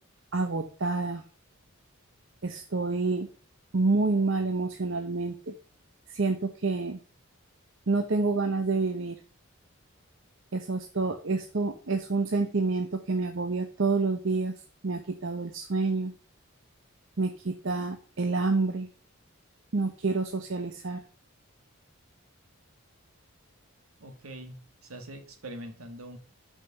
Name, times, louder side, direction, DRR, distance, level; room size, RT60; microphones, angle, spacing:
voice 1, 0.3-1.2 2.4-3.3 3.7-5.5 6.1-7.0 7.9-9.2 10.5-14.5 14.8-16.1 17.2-18.9 19.7-21.0, right 3 dB, 60° right, 5 dB, 0.8 m, -28 dB
voice 2, 24.0-26.2, right 1 dB, 80° right, 6 dB, 1.6 m, -43 dB
6.0 x 5.5 x 6.6 m, 0.38 s
head